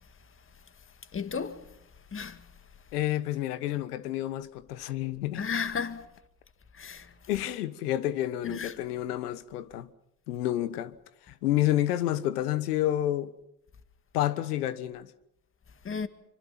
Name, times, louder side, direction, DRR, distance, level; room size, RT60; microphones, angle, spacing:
voice 1, 1.1-1.6 2.1-2.4 5.4-6.0 6.8-7.1 8.5-8.7 15.9-16.1, left 6 dB, 25° left, 2.0 m, -33 dB
voice 2, 2.9-5.5 7.3-9.9 10.3-11.0 11.3-13.3 14.1-15.1, left 13 dB, 80° left, 1.4 m, -29 dB
25.5 x 25.0 x 6.0 m
hypercardioid pair, 75°, 46 cm